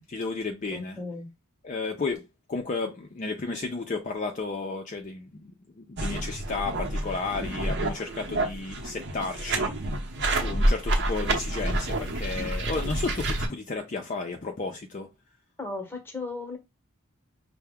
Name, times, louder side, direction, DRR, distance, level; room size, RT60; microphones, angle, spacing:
voice 1, 0.1-1.0 1.6-2.2 2.5-5.5 5.8-9.7 10.3-15.1, left 3 dB, 35° left, 0.4 m, -33 dB
voice 2, 0.7-1.3 15.6-16.6, left 3 dB, 10° left, 0.9 m, -35 dB
sound 1, 6.0-13.5, right 1 dB, 55° right, 0.8 m, -28 dB
5.6 x 2.1 x 3.5 m
head